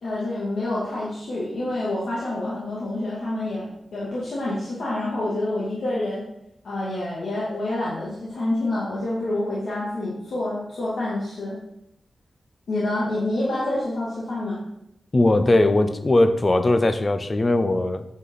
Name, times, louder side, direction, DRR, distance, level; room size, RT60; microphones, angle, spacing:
voice 1, 0.0-6.2 6.6-11.6 12.7-14.6, left 1 dB, 75° left, -8 dB, 2.6 m, -27 dB
voice 2, 15.1-18.0, left 2 dB, 25° left, 10 dB, 0.6 m, -19 dB
9.6 x 7.7 x 4.0 m, 0.80 s
wide cardioid pair, 180°, 0 cm